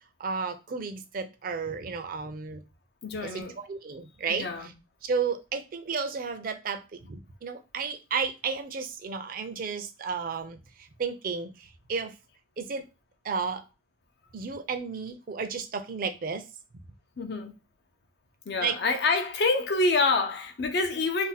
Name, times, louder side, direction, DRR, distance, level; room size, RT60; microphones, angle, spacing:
voice 1, 0.2-2.6 3.2-3.4 3.7-4.7 5.0-10.6 11.0-12.1 12.6-12.9 13.2-13.6 14.3-16.5 18.6-18.8, right 5 dB, 55° right, 0.5 m, -32 dB
voice 2, 3.0-3.6 4.3-4.7 17.2-17.5 18.5-21.3, left 3 dB, 70° left, 0.5 m, -27 dB
2.6 x 2.2 x 3.9 m
head